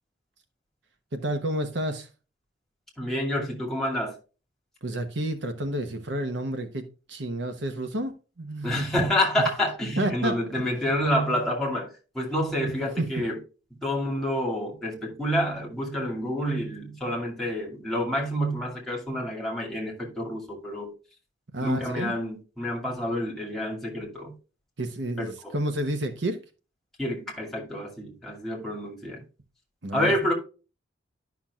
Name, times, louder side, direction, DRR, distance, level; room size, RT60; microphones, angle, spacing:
voice 1, 1.1-2.1 4.8-6.8 7.1-8.9 9.4-9.5 10.0-10.8 13.0-13.3 21.5-22.1 24.8-26.4 29.8-30.1, right 1 dB, 60° right, 0.9 m, -30 dB
voice 2, 3.0-4.2 8.6-13.4 13.8-20.9 21.6-24.3 25.4-25.5 27.0-29.2 29.9-30.3, equal, ahead, 2.3 m, -28 dB
11.5 x 5.9 x 2.4 m
head